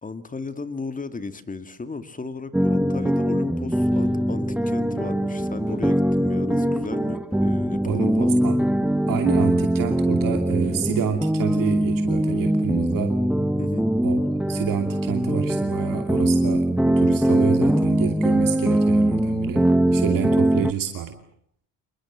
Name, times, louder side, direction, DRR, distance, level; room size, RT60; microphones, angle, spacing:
voice 1, 0.0-8.4 13.6-13.9, left 4 dB, 20° left, 11 dB, 2.4 m, -35 dB
sound 1, 2.5-20.7, right 1 dB, 5° right, 1.0 m, -22 dB
sound 2, 2.7-14.3, equal, 55° left, 7.7 m, -41 dB
voice 2, 7.8-8.6 9.1-13.1 14.0-14.2 14.5-21.2, right 9 dB, 60° right, 6 dB, 2.7 m, -29 dB
27.5 x 21.5 x 7.5 m, 0.63 s
cardioid pair, 105°, 37 cm